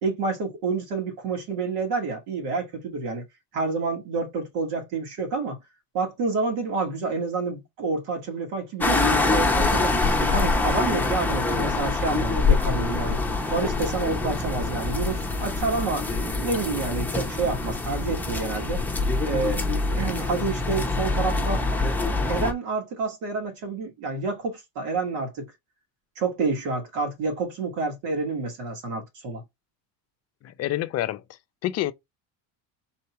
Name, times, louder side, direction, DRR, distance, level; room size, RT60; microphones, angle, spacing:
voice 1, 0.0-3.2 3.5-5.6 5.9-10.0 10.2-13.2 13.5-18.8 19.2-19.7 20.0-21.6 22.3-25.5 26.2-29.4, right 4 dB, 80° right, 2.2 m, -28 dB
sound 1, 8.8-22.5, left 3 dB, 5° left, 0.8 m, -25 dB
voice 2, 30.4-31.2 31.6-31.9, left 14 dB, 40° left, 0.6 m, -27 dB
4.3 x 2.8 x 4.4 m
cardioid pair, 135°, 40 cm